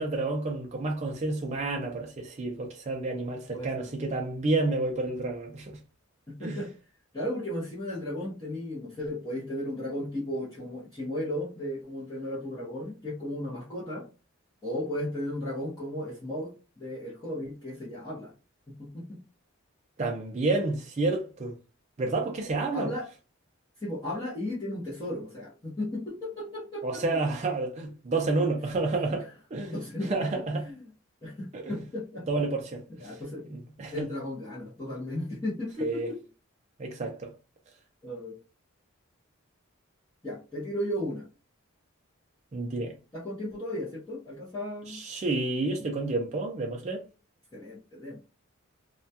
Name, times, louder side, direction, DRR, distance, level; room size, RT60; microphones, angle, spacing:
voice 1, 0.0-5.8 6.4-6.6 20.0-21.6 22.0-22.9 26.8-30.6 31.5-31.8 32.3-33.2 33.4-34.1 35.8-36.1 36.8-37.3 42.5-42.9 44.9-47.0, right 2 dB, 30° right, 0.3 m, -30 dB
voice 2, 3.5-3.8 6.3-6.7 7.1-14.1 14.6-16.5 16.8-18.3 18.8-19.2 22.7-23.1 23.8-27.2 29.1-29.2 29.7-30.3 30.6-30.9 31.2-32.3 33.0-33.4 33.9-36.2 38.0-38.4 40.2-41.3 43.1-45.0 47.5-48.2, left 1 dB, 15° left, 0.7 m, -35 dB
2.2 x 2.2 x 2.7 m
head